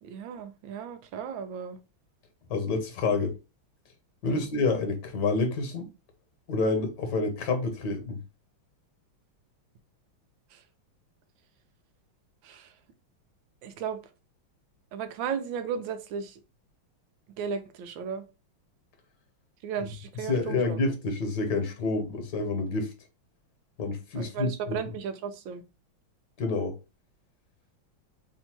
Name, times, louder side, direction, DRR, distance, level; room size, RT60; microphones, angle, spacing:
voice 1, 0.0-1.8 4.3-4.4 10.5-10.6 12.4-12.7 13.6-14.0 14.9-16.4 17.4-18.2 19.6-20.8 24.2-25.6, right 7 dB, 75° right, 1.3 m, -35 dB
voice 2, 2.5-3.3 4.2-5.9 6.5-8.2 19.8-19.9 20.3-22.9 23.8-24.8 26.4-26.7, left 3 dB, 60° left, 1.5 m, -28 dB
3.5 x 2.7 x 4.3 m
omnidirectional pair, 2.3 m